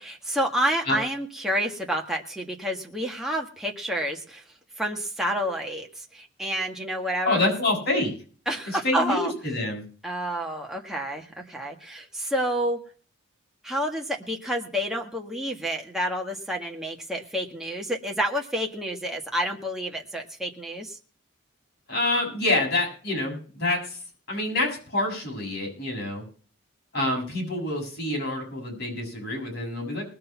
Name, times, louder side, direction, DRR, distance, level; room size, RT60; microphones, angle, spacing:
voice 1, 0.0-4.4 4.8-7.4 8.5-9.3 10.0-12.8 13.6-21.0, equal, ahead, 0 dB, 1.7 m, -29 dB
voice 2, 7.2-8.1 8.7-9.8 21.9-24.0 24.3-26.2 26.9-30.1, left 2 dB, 50° left, 0 dB, 6.8 m, -27 dB
20.5 x 6.8 x 5.8 m, 0.41 s
head